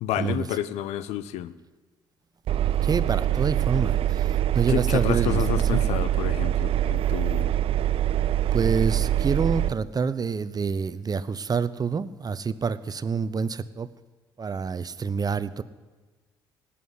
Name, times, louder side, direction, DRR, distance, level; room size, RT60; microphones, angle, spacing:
voice 1, 0.0-1.5 4.7-7.5, left 12 dB, 70° left, 16 dB, 0.7 m, -30 dB
Engine, 2.5-9.7, right 12 dB, 55° right, 0.4 m, -24 dB
voice 2, 2.8-5.4 5.7-5.8 8.5-13.9 14.4-15.6, right 5 dB, 35° right, 15 dB, 0.8 m, -27 dB
17.5 x 8.5 x 9.6 m, 1.3 s
hypercardioid pair, 50°, 12 cm